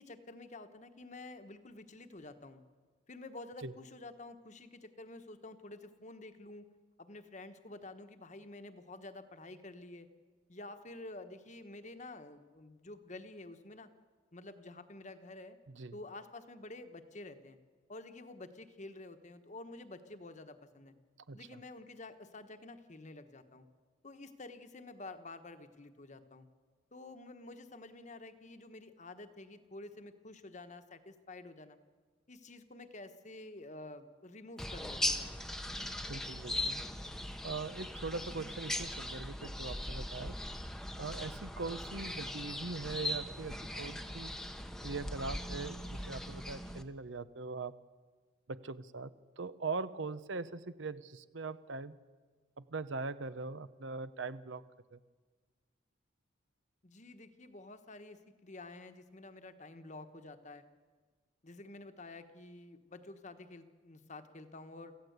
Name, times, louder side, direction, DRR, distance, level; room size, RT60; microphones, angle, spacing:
voice 1, 0.0-2.6 3.1-6.7 7.0-10.1 10.5-13.9 14.3-15.6 15.9-17.6 17.9-20.9 21.3-23.6 24.0-26.5 26.9-31.8 32.3-35.3 56.8-60.6 61.4-64.9, left 2 dB, 35° left, 9 dB, 1.2 m, -50 dB
voice 2, 15.7-16.0 21.3-21.4 36.1-36.8 37.4-40.3 41.0-44.3 44.8-47.7 48.5-49.1 49.4-51.9 52.6-54.6 54.9-55.0, right 3 dB, 65° right, 14 dB, 0.8 m, -41 dB
sound 1, 34.6-46.8, left 1 dB, ahead, 0.9 m, -39 dB
25.5 x 15.0 x 8.1 m, 1.5 s
head